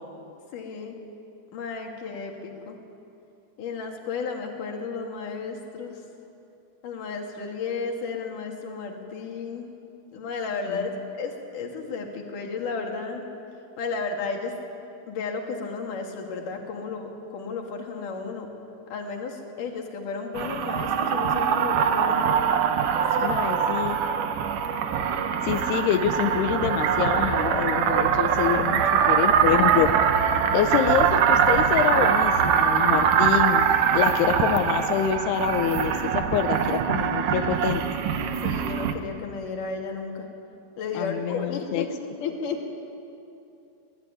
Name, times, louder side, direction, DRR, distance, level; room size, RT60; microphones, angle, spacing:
voice 1, 0.5-1.0 1.5-2.8 3.6-6.0 6.8-9.7 10.1-13.2 13.8-14.6 15.1-18.5 18.9-22.3 23.1-23.4 38.4-40.3 40.8-41.9 42.2-42.6, left 4 dB, 55° left, 2 dB, 3.7 m, -33 dB
sound 1, 20.4-38.9, right 7 dB, 65° right, 2.4 m, -23 dB
voice 2, 23.2-24.0 25.4-28.8 29.1-29.9 30.5-33.7 33.9-37.8 40.9-41.9, left 9 dB, 90° left, 7 dB, 2.9 m, -26 dB
24.5 x 18.5 x 9.9 m, 2.7 s
omnidirectional pair, 4.6 m